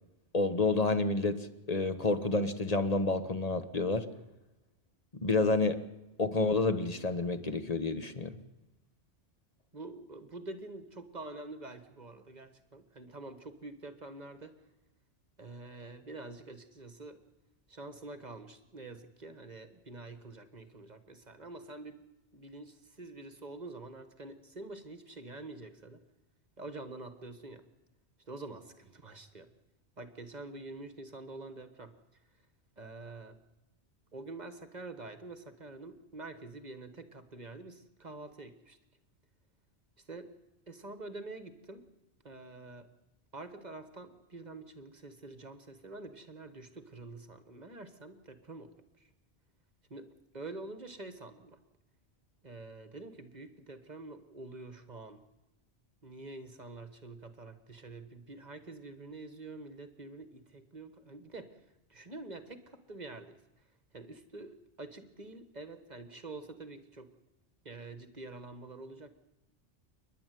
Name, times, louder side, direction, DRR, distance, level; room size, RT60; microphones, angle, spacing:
voice 1, 0.3-4.1 5.2-5.8 6.2-8.4, left 3 dB, 35° left, 9 dB, 1.4 m, -29 dB
voice 2, 9.7-14.6 15.4-17.2 17.7-22.0 22.3-26.0 26.6-27.6 28.3-29.5 30.0-31.9 32.8-33.4 34.1-38.8 40.1-40.3 40.7-41.8 42.2-42.9 43.3-49.1 49.9-51.6 52.4-55.2 56.0-61.6 61.9-63.4 63.9-67.1 67.6-69.2, right 2 dB, 40° right, 10 dB, 1.5 m, -46 dB
29.0 x 11.0 x 9.3 m, 0.98 s
omnidirectional pair, 1.2 m